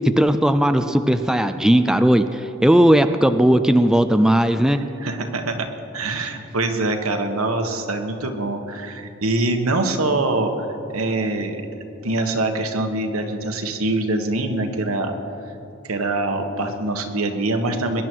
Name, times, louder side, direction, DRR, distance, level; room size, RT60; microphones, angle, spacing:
voice 1, 0.2-4.8, right 1 dB, 5° right, 8 dB, 0.4 m, -17 dB
voice 2, 5.0-5.7 5.9-10.5 10.9-11.6 12.0-15.1 15.8-18.0, right 2 dB, 90° right, 5 dB, 1.4 m, -24 dB
21.5 x 10.5 x 4.6 m, 2.9 s
head